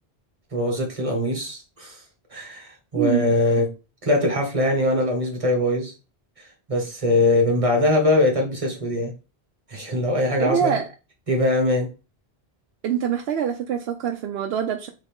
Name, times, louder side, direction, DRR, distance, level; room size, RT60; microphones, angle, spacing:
voice 1, 0.5-1.9 2.3-3.7 4.0-5.9 6.7-9.1 9.7-10.7 11.3-11.9, left 1 dB, 35° right, 1.5 m, -22 dB
voice 2, 2.9-3.3 10.4-10.9 12.8-14.9, right 8 dB, 80° right, 0.8 m, -24 dB
3.8 x 3.6 x 3.5 m
omnidirectional pair, 1.0 m